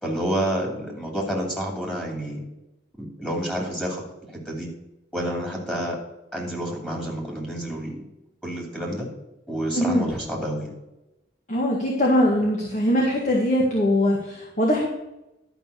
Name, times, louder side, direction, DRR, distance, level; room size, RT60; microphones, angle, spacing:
voice 1, 0.0-2.4 3.0-4.0 4.3-4.7 5.1-6.0 6.3-8.0 8.4-9.1 9.5-10.7, equal, 5° left, -2 dB, 2.6 m, -29 dB
voice 2, 9.7-10.1 11.5-14.9, left 1 dB, 45° left, -2 dB, 1.9 m, -21 dB
12.0 x 5.4 x 6.8 m, 0.94 s
head